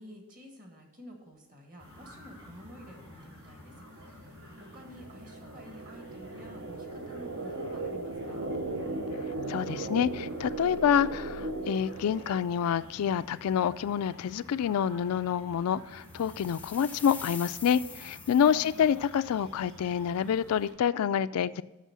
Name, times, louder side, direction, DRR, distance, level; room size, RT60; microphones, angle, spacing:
voice 1, 0.0-8.5 18.4-19.0, equal, 40° right, 2 dB, 1.7 m, -50 dB
sound 1, 1.8-20.7, left 1 dB, 80° right, 3.9 m, -51 dB
sound 2, 3.9-12.7, right 2 dB, 65° right, 0.7 m, -37 dB
voice 2, 9.5-21.6, left 8 dB, 85° left, 14 dB, 0.3 m, -27 dB
sound 3, 16.0-19.1, left 4 dB, 5° left, 0.4 m, -45 dB
8.2 x 6.4 x 6.1 m, 1.1 s
head